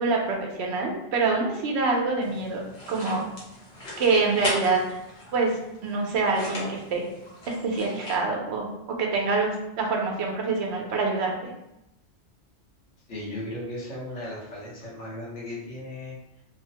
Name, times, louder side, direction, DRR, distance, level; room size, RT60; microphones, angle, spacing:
voice 1, 0.0-3.2 4.0-5.0 5.3-5.5 5.8-7.1 7.5-9.5 9.8-11.5, right 3 dB, 70° right, 0 dB, 0.9 m, -26 dB
sound 1, 2.2-8.2, left 1 dB, 60° left, 1.1 m, -37 dB
voice 2, 13.1-16.4, left 1 dB, 75° left, -6 dB, 1.3 m, -36 dB
3.1 x 2.0 x 2.8 m, 0.85 s
omnidirectional pair, 1.2 m